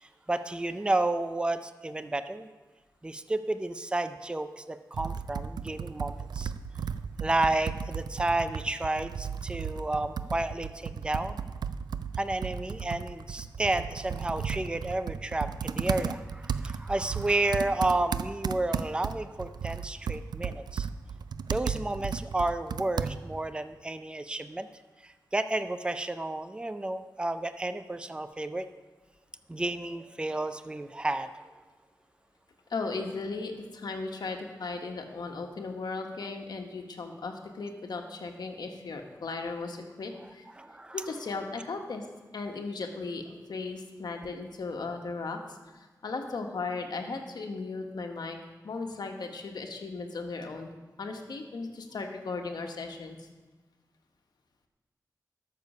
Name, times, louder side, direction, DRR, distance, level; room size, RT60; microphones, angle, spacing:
voice 1, 0.0-2.5 3.0-6.5 7.2-11.4 12.2-20.9 21.5-24.7 25.0-28.7 29.5-31.4 40.6-41.1, right 2 dB, 15° right, 10 dB, 0.5 m, -31 dB
Computer keyboard, 4.9-23.5, right 6 dB, 90° right, 0.4 m, -35 dB
voice 2, 32.7-40.5 40.9-42.1 42.3-48.4 48.6-50.7 51.0-53.3, left 3 dB, 85° left, 3 dB, 1.3 m, -36 dB
13.0 x 6.7 x 5.4 m, 1.3 s
wide cardioid pair, 100°, 7 cm